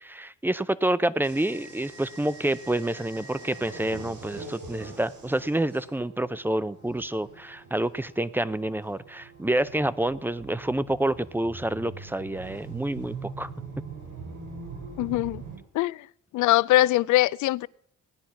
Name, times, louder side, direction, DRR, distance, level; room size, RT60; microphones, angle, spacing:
voice 1, 0.0-13.5, right 1 dB, 5° right, 0.5 m, -28 dB
sound 1, 1.2-15.6, right 4 dB, 75° right, 7.0 m, -43 dB
voice 2, 15.0-15.4 15.7-16.0 16.3-17.7, left 16 dB, 75° left, 0.5 m, -22 dB
17.5 x 9.9 x 5.8 m
cardioid pair, 90°, 30 cm